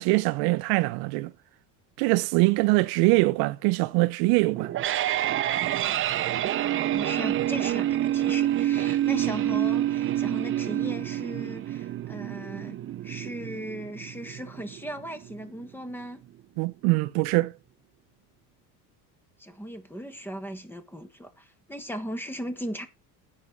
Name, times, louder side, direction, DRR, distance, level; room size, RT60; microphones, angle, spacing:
voice 1, 0.0-1.3 2.0-4.7 16.6-17.5, right 23 dB, 70° right, 0.7 m, -23 dB
sound 1, 4.5-15.5, right 13 dB, 30° right, 0.6 m, -28 dB
voice 2, 6.6-12.8 13.0-16.2 19.4-22.9, equal, 5° left, 1.3 m, -37 dB
9.6 x 6.3 x 5.4 m
cardioid pair, 135°, 40 cm